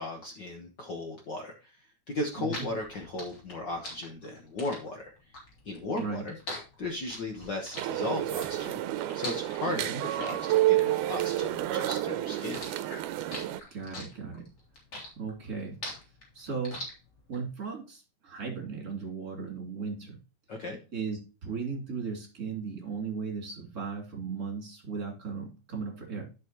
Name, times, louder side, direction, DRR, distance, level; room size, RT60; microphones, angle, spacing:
voice 1, 0.0-1.7 2.1-5.1 5.6-6.4 6.8-8.8 9.1-12.6 20.5-20.8, left 2 dB, 60° left, 2 dB, 1.1 m, -36 dB
sound 1, 2.1-11.9 12.3-17.4, left 2 dB, 40° left, 3.5 m, -42 dB
voice 2, 2.4-2.7 5.9-6.3 9.7-10.0 13.7-14.5 15.2-15.8 16.3-16.8 17.3-20.2 20.9-26.2, right 5 dB, 30° right, 1 dB, 3.2 m, -36 dB
sound 2, 7.8-13.6, right 14 dB, 90° right, 2.2 m, -29 dB
11.0 x 5.9 x 2.9 m, 0.31 s
omnidirectional pair, 3.6 m